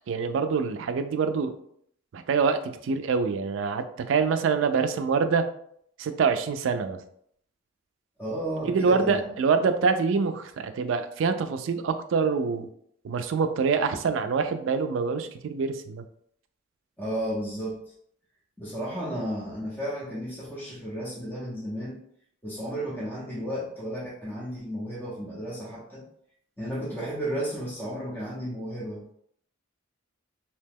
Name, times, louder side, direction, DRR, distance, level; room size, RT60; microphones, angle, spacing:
voice 1, 0.1-1.5 2.1-5.5 6.0-7.0 8.6-12.7 13.0-16.0, right 5 dB, 70° right, 9 dB, 0.3 m, -25 dB
voice 2, 8.2-9.2 17.0-17.8 18.6-22.0 22.4-26.1 26.6-29.1, equal, 10° left, -7 dB, 0.7 m, -33 dB
2.8 x 2.1 x 3.4 m, 0.67 s
head